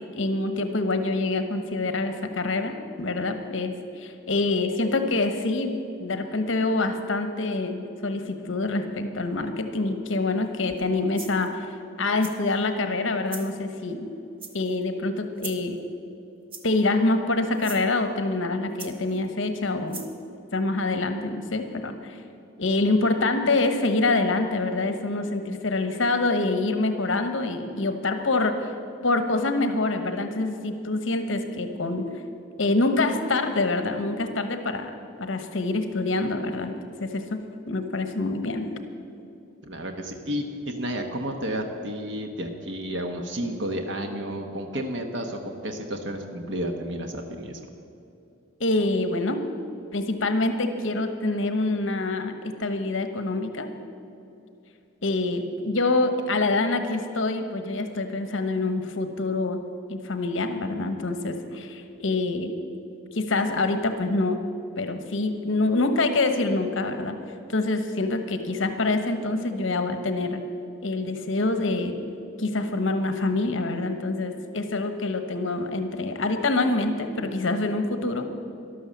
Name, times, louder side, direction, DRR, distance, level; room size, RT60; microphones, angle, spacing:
voice 1, 0.0-11.7 12.0-14.1 14.5-15.8 16.6-20.0 20.5-22.2 22.6-28.7 29.0-32.0 32.6-34.9 35.2-36.7 37.0-37.4 37.7-38.7 48.6-49.4 49.9-52.3 52.6-53.7 55.0-59.6 59.9-62.5 63.1-64.4 64.8-67.2 67.5-70.4 70.8-71.9 72.4-78.3, left 2 dB, 70° left, 7 dB, 1.1 m, -26 dB
sound 1, 10.7-10.8 11.2-11.5 12.2-12.6 13.3-13.5 14.4-14.8 15.4-15.7 16.5-16.9 17.5-17.8 18.8-19.2 19.9-20.2, right 4 dB, 25° right, 1.1 m, -40 dB
voice 2, 39.6-47.6, equal, 60° right, 4 dB, 1.1 m, -31 dB
13.0 x 12.0 x 7.3 m, 2.8 s
head